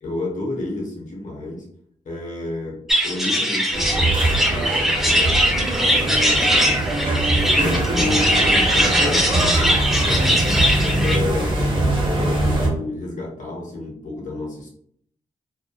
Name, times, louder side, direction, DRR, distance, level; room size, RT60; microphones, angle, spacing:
voice 1, 0.0-1.7 2.0-5.5 5.8-6.7 7.6-14.7, left 2 dB, 65° left, -2 dB, 0.8 m, -31 dB
sound 1, 2.9-11.2, equal, ahead, 0.5 m, -20 dB
sound 2, 3.7-12.7, right 1 dB, 35° right, 0.7 m, -22 dB
2.6 x 2.2 x 2.2 m, 0.67 s
cardioid pair, 70°, 14 cm